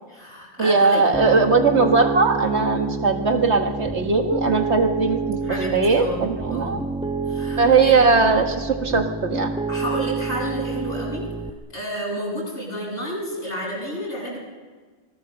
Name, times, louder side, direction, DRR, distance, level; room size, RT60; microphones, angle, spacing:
voice 1, 0.1-1.1 5.4-6.8 7.3-8.3 9.7-11.2 11.7-14.4, equal, 55° left, -4 dB, 8.3 m, -30 dB
voice 2, 0.6-5.4 5.7-6.8 7.6-9.5, right 4 dB, 75° right, 5 dB, 1.7 m, -19 dB
Piano, 1.1-11.5, right 4 dB, 5° right, 0.9 m, -28 dB
25.5 x 20.5 x 6.9 m, 1.4 s
omnidirectional pair, 1.2 m